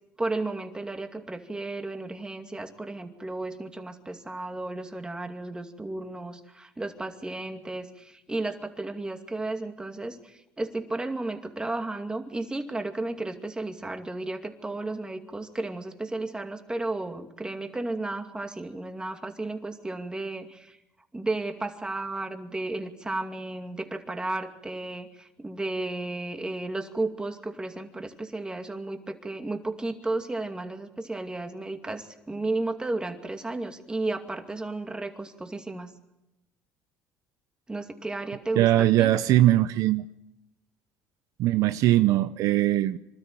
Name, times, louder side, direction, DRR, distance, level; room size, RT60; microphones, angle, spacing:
voice 1, 0.2-20.8 21.1-35.9 37.7-39.1, right 2 dB, 15° right, 5 dB, 2.4 m, -33 dB
voice 2, 38.6-40.0 41.4-43.0, right 14 dB, 70° right, 13 dB, 0.6 m, -21 dB
25.5 x 13.0 x 9.0 m, 0.94 s
supercardioid pair, 95°, 6 cm